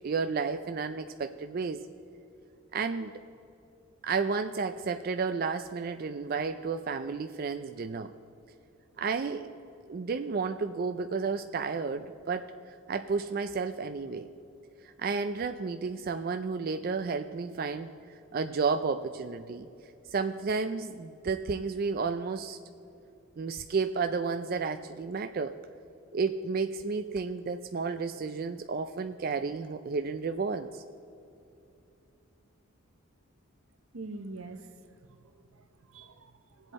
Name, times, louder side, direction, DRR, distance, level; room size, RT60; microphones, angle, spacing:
voice 1, 0.0-1.8 2.7-3.1 4.0-8.1 9.0-9.5 9.9-14.3 14.8-19.7 20.1-22.6 23.4-25.6 26.1-30.8, right 4 dB, 45° right, 8 dB, 0.4 m, -32 dB
voice 2, 33.9-34.8 35.2-36.7, right 2 dB, 80° right, 8 dB, 0.9 m, -45 dB
22.0 x 8.0 x 4.2 m, 2.8 s
head